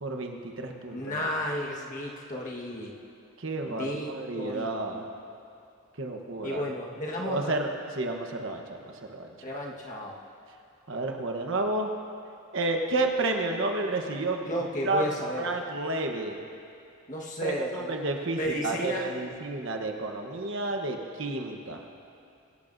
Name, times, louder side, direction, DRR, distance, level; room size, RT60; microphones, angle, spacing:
voice 1, 0.0-1.3 3.4-5.1 6.0-6.6 7.2-7.7 7.9-8.8 9.1-9.5 10.9-11.9 12.5-14.5 14.8-15.0 15.3-16.4 17.4-21.8, right 2 dB, 65° right, 3 dB, 1.1 m, -31 dB
voice 2, 0.9-2.9 3.7-4.7 4.9-5.0 6.4-7.5 9.4-10.2 14.5-15.5 17.1-17.9 18.4-19.1, left 1 dB, 35° left, -2 dB, 1.5 m, -33 dB
24.0 x 12.0 x 2.7 m, 2.7 s
head